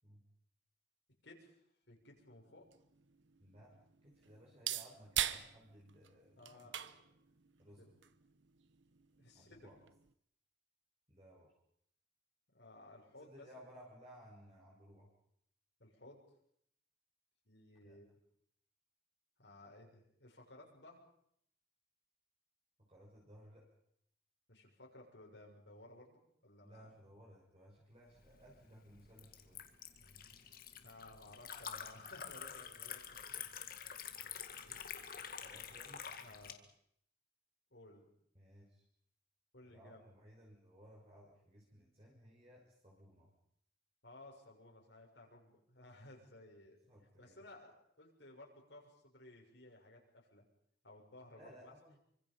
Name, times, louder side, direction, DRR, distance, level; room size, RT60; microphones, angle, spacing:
voice 1, 1.2-2.7 6.3-6.7 7.8-7.9 9.2-9.7 12.5-13.5 15.8-16.2 17.4-18.2 19.4-21.0 24.5-27.0 30.0-30.5 30.8-33.4 34.6-34.9 36.2-36.6 37.7-38.0 39.5-40.0 44.0-46.8 47.2-50.4 50.8-51.7, left 2 dB, 70° left, -1 dB, 6.7 m, -58 dB
sound 1, 2.1-10.1, right 11 dB, 80° right, 1.0 m, -45 dB
voice 2, 3.4-3.7 4.0-7.0 7.6-7.9 9.3-9.8 11.1-11.5 13.2-15.1 17.8-18.0 22.8-23.7 26.6-29.6 35.4-36.0 38.3-38.8 39.6-43.3 46.8-47.4 51.3-52.0, equal, 35° right, -3 dB, 6.0 m, -60 dB
Liquid, 28.2-36.5, left 8 dB, 50° left, 2.0 m, -48 dB
28.0 x 25.0 x 5.5 m, 0.70 s
head